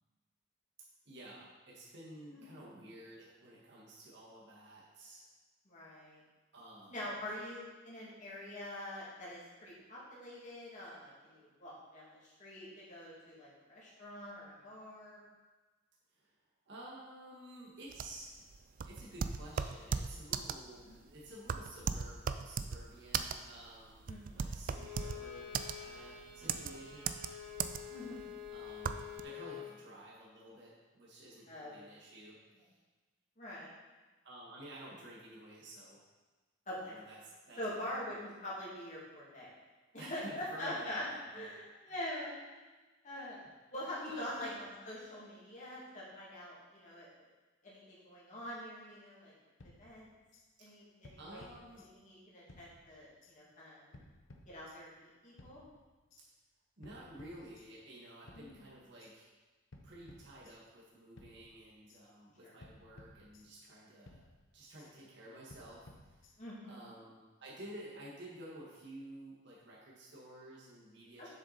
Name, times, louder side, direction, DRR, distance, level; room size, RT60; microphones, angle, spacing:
voice 1, 1.1-5.2 6.5-7.1 16.1-16.3 16.7-18.3 18.8-27.2 28.5-29.0 29.2-32.4 34.2-36.0 36.8-38.0 40.0-41.5 44.1-44.6 51.2-51.8 56.8-59.3 59.8-64.2 64.5-66.2 66.6-71.3, right 1 dB, 65° right, -5 dB, 1.9 m, -52 dB
voice 2, 5.7-6.2 6.9-15.2 20.9-21.0 24.1-24.4 26.4-26.7 27.9-28.3 31.5-31.7 33.4-33.7 36.7-37.0 37.6-39.5 39.9-41.0 41.3-42.4 43.0-43.4 43.7-47.1 47.6-49.3 49.6-50.1 50.6-51.5 51.8-54.0 54.5-55.6 58.3-58.6 62.4-62.5 66.4-66.7 71.2-71.3, left 1 dB, 40° left, -7 dB, 2.6 m, -45 dB
sound 1, 17.9-29.2, right 6 dB, 45° right, 0.3 m, -37 dB
Bowed string instrument, 24.7-29.7, left 8 dB, 85° right, 2.1 m, -48 dB
sound 2, 49.6-50.5 51.0-52.2 52.5-53.4 53.9-55.0 55.4-56.2 56.8-58.0 58.3-59.1 59.7-60.9 61.2-62.0 62.6-63.8 64.1-64.9 65.5-66.7, left 1 dB, 85° left, 0.8 m, -59 dB
7.4 x 6.3 x 4.2 m, 1.2 s
head